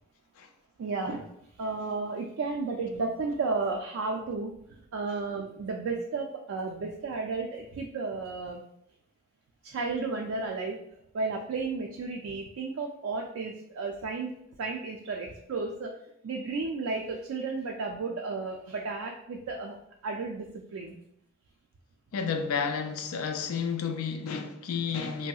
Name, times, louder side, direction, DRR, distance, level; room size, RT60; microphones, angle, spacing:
voice 1, 0.8-1.3 1.6-8.6 9.6-10.8 11.1-14.3 14.6-15.9 16.2-19.8 20.0-21.0, right 3 dB, 70° right, 0.3 m, -33 dB
voice 2, 22.1-25.3, left 6 dB, 85° left, 0.4 m, -31 dB
3.0 x 2.7 x 2.3 m
head